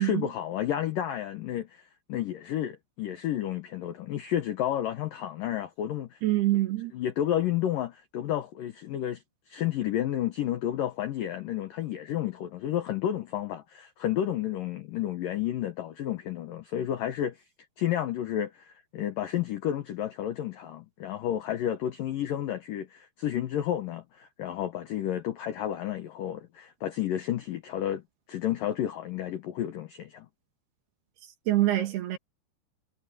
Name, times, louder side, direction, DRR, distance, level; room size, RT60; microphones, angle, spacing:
voice 1, 0.0-6.2 6.9-17.4 17.8-28.0 28.3-30.3, left 11 dB, 85° left, 1.9 m, -31 dB
voice 2, 6.2-6.9 31.5-32.2, right 15 dB, 65° right, 3.2 m, -25 dB
omnidirectional pair, 5.7 m